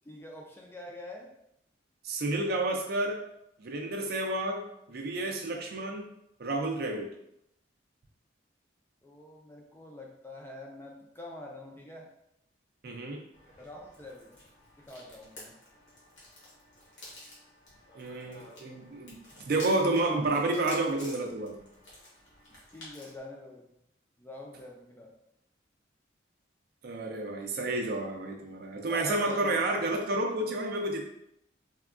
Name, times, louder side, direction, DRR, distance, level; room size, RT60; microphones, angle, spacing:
voice 1, 0.0-1.3 9.0-12.1 13.6-14.4 14.8-15.6 22.7-23.6 24.2-25.1 28.9-29.6, left 1 dB, 10° left, -1 dB, 0.3 m, -45 dB
voice 2, 2.0-3.2 3.6-6.1 6.4-7.1 12.8-13.2 18.0-21.7 26.8-31.1, right 2 dB, 55° right, 2 dB, 0.4 m, -30 dB
sound 1, 13.3-23.2, left 1 dB, 70° left, 1.1 m, -51 dB
3.5 x 2.2 x 2.4 m, 0.78 s
head